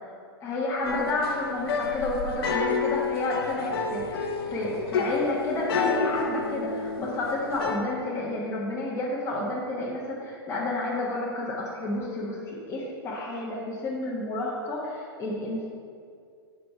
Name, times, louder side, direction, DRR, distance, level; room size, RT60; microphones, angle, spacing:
voice 1, 0.4-12.4 12.7-15.7, left 2 dB, 20° left, -6 dB, 1.2 m, -30 dB
sound 1, 0.8-7.8, left 4 dB, 65° left, 0.8 m, -29 dB
5.3 x 5.1 x 5.7 m, 2.3 s
hypercardioid pair, 110°, 13 cm